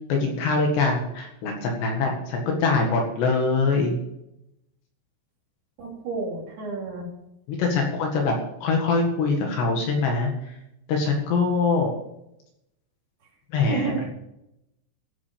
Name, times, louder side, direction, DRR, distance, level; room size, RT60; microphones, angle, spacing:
voice 1, 0.1-4.0 7.6-8.3 8.6-10.3 10.9-11.9 13.5-14.1, left 4 dB, 65° left, 1 dB, 3.7 m, -23 dB
voice 2, 5.8-7.1 13.6-14.1, right 4 dB, 55° right, -1 dB, 4.4 m, -31 dB
15.5 x 9.2 x 5.2 m, 0.84 s
omnidirectional pair, 6.0 m